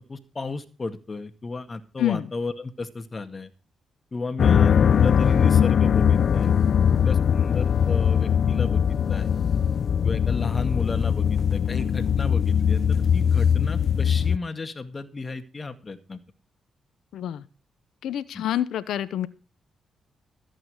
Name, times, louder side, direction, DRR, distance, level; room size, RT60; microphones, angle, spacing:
voice 1, 0.0-3.5 4.1-6.5 6.9-9.3 10.0-16.2 18.3-18.4, left 3 dB, 40° left, 9 dB, 2.1 m, -33 dB
voice 2, 2.0-2.3 17.1-17.4 18.0-19.3, left 11 dB, 80° left, 16 dB, 0.9 m, -27 dB
sound 1, 4.4-14.4, left 8 dB, 65° left, 0.5 m, -21 dB
14.0 x 8.8 x 5.0 m, 0.35 s
supercardioid pair, 55°, 0 cm